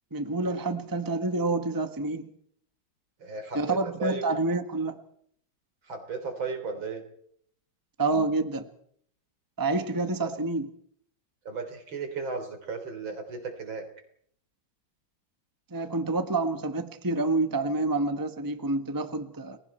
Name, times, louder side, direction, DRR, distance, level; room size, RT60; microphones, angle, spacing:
voice 1, 0.1-2.3 3.5-5.0 8.0-8.7 9.6-10.7 15.7-19.6, right 2 dB, 10° right, 9 dB, 1.1 m, -28 dB
voice 2, 3.2-4.2 5.9-7.0 10.2-10.3 11.5-13.8, right 4 dB, 70° right, 6 dB, 4.3 m, -35 dB
30.0 x 21.0 x 4.5 m, 0.65 s
omnidirectional pair, 2.2 m